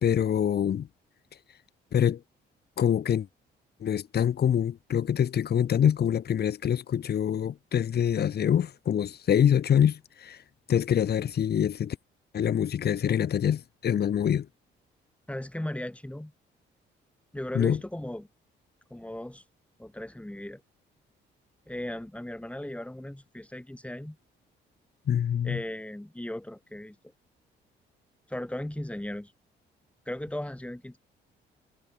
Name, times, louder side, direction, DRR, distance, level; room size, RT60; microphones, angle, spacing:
voice 1, 0.0-0.9 1.9-2.2 2.8-3.3 3.8-10.4 10.7-12.0 12.3-14.5 17.5-17.8 25.1-25.6, left 9 dB, 55° left, 1.4 m, -25 dB
voice 2, 15.3-16.3 17.3-18.3 18.9-19.4 19.8-20.6 21.7-24.2 25.4-27.0 28.3-29.3 30.1-31.0, left 1 dB, 5° left, 7.4 m, -37 dB
cardioid pair, 90°, 20 cm